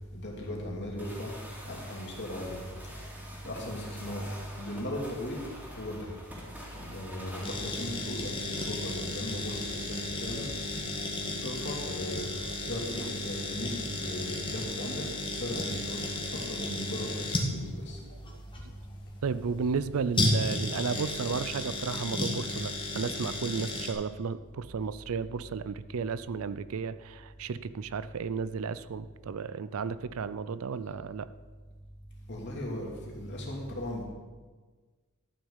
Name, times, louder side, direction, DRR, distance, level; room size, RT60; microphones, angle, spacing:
voice 1, 0.1-1.3 1.6-2.6 3.4-5.4 5.8-6.1 6.7-10.5 11.2-15.0 15.3-16.2 16.5-18.0 32.3-34.0, left 1 dB, 50° left, -2 dB, 2.9 m, -37 dB
sound 1, 1.0-7.5, equal, 5° right, 2.7 m, -46 dB
sound 2, 7.4-23.9, left 2 dB, 20° left, 1.6 m, -34 dB
voice 2, 19.2-31.3, right 5 dB, 65° right, 15 dB, 0.4 m, -33 dB
12.5 x 6.1 x 7.2 m, 1.4 s
head